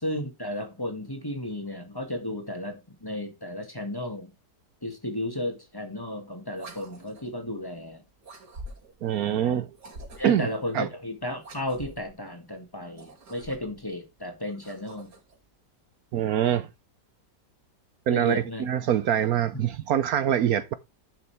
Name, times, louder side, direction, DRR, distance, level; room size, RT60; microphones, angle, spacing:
voice 1, 0.0-4.3 4.8-8.0 9.2-9.6 10.2-15.1 18.1-18.7 19.5-19.6, left 1 dB, 15° left, 1.9 m, -34 dB
sound 1, 6.5-7.4 8.2-9.0 9.7-10.5 11.4-12.1 12.9-13.8 14.5-15.4, right 1 dB, 90° right, 3.3 m, -45 dB
voice 2, 9.0-9.7 10.2-10.5 10.7-10.9 16.1-16.7 18.1-20.7, right 10 dB, 70° right, 1.1 m, -24 dB
11.0 x 6.9 x 3.4 m
omnidirectional pair, 1.8 m